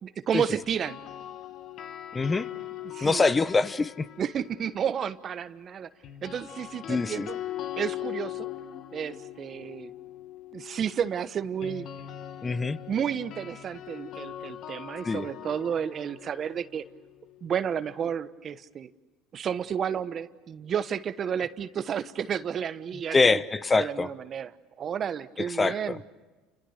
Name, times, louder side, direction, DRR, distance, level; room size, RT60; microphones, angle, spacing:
voice 1, 0.0-1.0 2.8-3.2 4.2-5.9 6.2-7.4 7.8-8.5 8.9-9.9 10.5-11.9 12.9-16.8 17.4-18.9 19.3-23.4 23.8-24.5 24.8-26.0, right 8 dB, 40° right, 13 dB, 1.2 m, -31 dB
sound 1, 0.6-4.8 6.0-17.9, left 12 dB, 55° left, 1.5 m, -41 dB
voice 2, 2.1-2.5 3.0-4.1 6.9-7.3 12.4-12.8 15.0-15.3 23.1-24.1 25.4-26.0, left 3 dB, 20° left, 14 dB, 1.0 m, -24 dB
30.0 x 26.5 x 6.6 m, 1.2 s
supercardioid pair, 90°, 0 cm